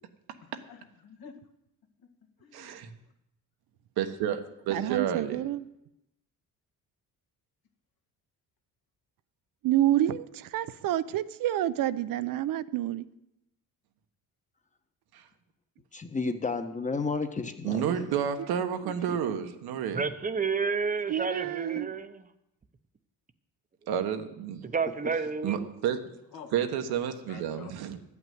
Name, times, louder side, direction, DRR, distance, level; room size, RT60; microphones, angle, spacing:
voice 1, 0.4-1.4 2.4-2.8 26.3-26.5 27.3-28.0, left 7 dB, 75° left, 4 dB, 1.9 m, -49 dB
voice 2, 2.5-2.9 4.0-5.4 15.1-15.2 17.6-20.0 23.9-24.7 25.4-26.0 26.5-28.0, right 9 dB, 85° right, 7 dB, 1.3 m, -30 dB
voice 3, 4.7-5.6 9.6-13.1 18.8-18.9 19.3-19.4 21.1-21.9, right 13 dB, 65° right, 15 dB, 0.6 m, -28 dB
voice 4, 15.9-18.1 19.1-19.2, left 4 dB, 20° left, 8 dB, 1.0 m, -32 dB
voice 5, 19.9-22.2 24.6-25.7, right 5 dB, 25° right, 11 dB, 0.8 m, -30 dB
13.0 x 5.9 x 9.4 m, 0.86 s
cardioid pair, 135°, 37 cm